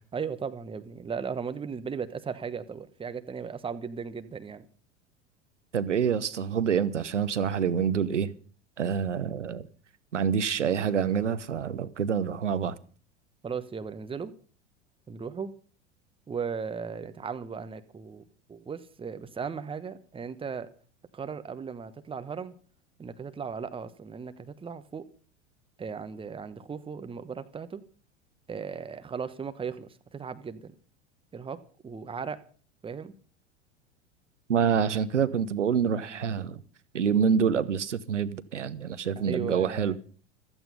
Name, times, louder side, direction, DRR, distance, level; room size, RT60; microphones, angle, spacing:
voice 1, 0.1-4.7 13.4-14.3 15.1-15.5 16.3-18.2 18.5-20.7 21.1-22.5 23.0-25.0 25.8-27.8 28.5-30.7 31.3-31.6 31.8-32.4 32.8-33.1 39.2-40.0, right 6 dB, 15° right, 1.2 m, -36 dB
voice 2, 5.7-8.3 8.8-9.7 10.1-12.8 34.5-36.6 36.9-40.0, right 7 dB, 80° right, 1.0 m, -27 dB
15.0 x 14.0 x 5.4 m
figure-of-eight pair, 85°, 36 cm